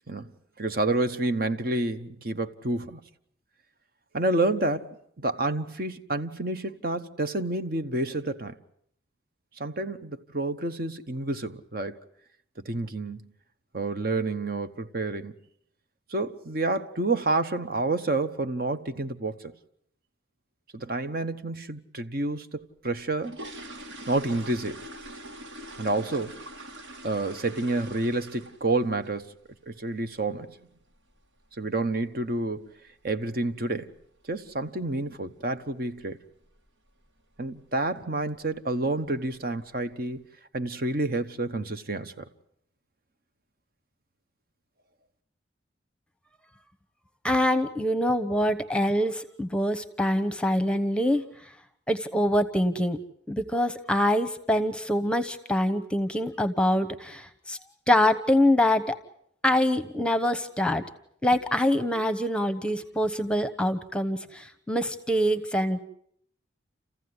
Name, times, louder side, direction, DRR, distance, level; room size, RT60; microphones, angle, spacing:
voice 1, 0.6-3.0 4.1-8.6 9.6-12.0 12.6-13.3 13.7-15.3 16.1-19.5 20.7-23.4 24.1-24.9 25.8-26.4 27.0-29.3 29.7-30.6 31.6-32.7 33.0-33.9 34.3-36.2 37.4-40.2 40.5-42.3, right 2 dB, 50° right, 1.0 m, -29 dB
sound 1, 22.9-28.8 29.0-29.3 29.7-29.8 30.1-30.3 30.7-30.9 31.1-31.2 31.8-31.9 32.2-32.3 32.9-33.2 33.4-33.5 33.9-34.2 34.5-34.6 35.0-35.1 35.7-36.0 36.4-36.7 37.0-37.1 37.6-37.7 38.4-38.6 39.0-39.5 39.9-40.0, right 1 dB, 80° right, 2.4 m, -43 dB
voice 2, 47.2-51.2 51.9-53.0 53.3-57.6 57.9-59.0 59.4-60.8 61.2-65.8, left 1 dB, 5° left, 1.0 m, -25 dB
29.0 x 15.0 x 9.6 m
head